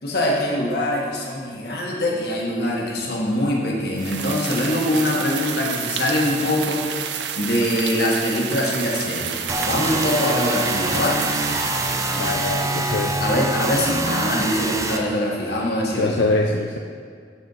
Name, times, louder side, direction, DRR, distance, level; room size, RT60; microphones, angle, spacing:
voice 1, 0.0-6.9 7.4-11.2 13.2-16.1, left 1 dB, 65° left, -2 dB, 1.5 m, -23 dB
sound 1, 4.0-13.0, right 8 dB, 80° right, 0.5 m, -30 dB
sound 2, 9.5-15.0, right 2 dB, 20° right, 0.5 m, -25 dB
voice 2, 12.2-13.2 16.0-16.8, left 2 dB, 85° left, 1 dB, 0.5 m, -23 dB
12.5 x 4.4 x 4.0 m, 2.1 s
head